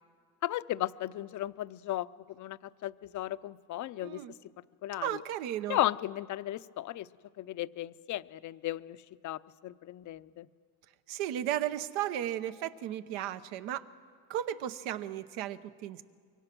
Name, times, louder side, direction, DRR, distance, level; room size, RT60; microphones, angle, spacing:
voice 1, 0.4-2.1 2.4-4.2 4.8-5.2 5.7-7.1 7.4-9.0 9.2-10.5, left 14 dB, 40° left, 14 dB, 0.6 m, -35 dB
voice 2, 4.0-4.3 5.0-5.8 11.1-13.9 14.3-16.0, right 11 dB, 70° right, 12 dB, 1.1 m, -35 dB
24.5 x 24.0 x 6.1 m, 2.1 s
supercardioid pair, 105°, 46 cm